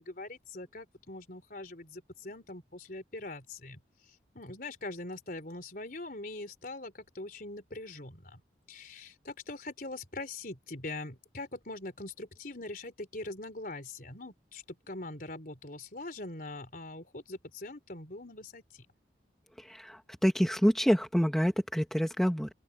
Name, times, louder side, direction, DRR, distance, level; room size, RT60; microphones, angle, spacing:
voice 1, 0.0-3.8 4.3-8.4 8.7-18.9, left 2 dB, 50° left, 4.1 m, -42 dB
voice 2, 19.6-22.5, equal, ahead, 1.7 m, -27 dB
open air
head